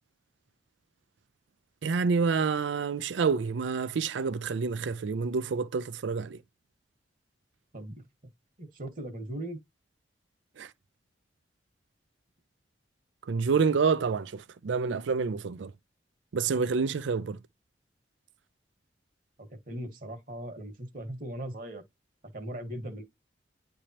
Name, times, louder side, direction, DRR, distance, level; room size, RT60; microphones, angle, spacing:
voice 1, 1.8-6.4 10.6-10.7 13.3-15.7 16.3-17.4, right 5 dB, 80° right, 0.4 m, -28 dB
voice 2, 8.6-9.6 19.4-21.8 22.3-23.0, right 1 dB, 45° right, 1.5 m, -39 dB
9.9 x 3.4 x 2.9 m
head